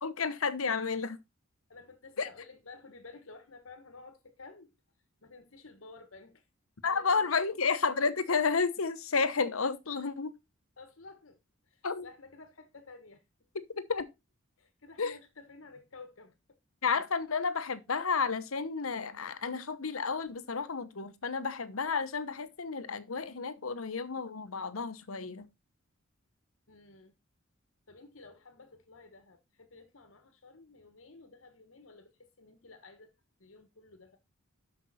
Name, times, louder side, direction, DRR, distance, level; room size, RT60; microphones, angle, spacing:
voice 1, 0.0-1.2 2.2-2.3 6.8-10.3 11.8-12.1 13.8-14.1 15.0-15.2 16.8-25.5, left 5 dB, 85° left, 1.0 m, -31 dB
voice 2, 1.7-4.7 5.2-6.4 6.8-7.6 10.8-11.4 11.7-13.2 14.6-16.3 26.7-27.1 27.9-33.1 33.4-34.2, left 3 dB, 70° left, 1.3 m, -52 dB
12.5 x 5.3 x 4.2 m
head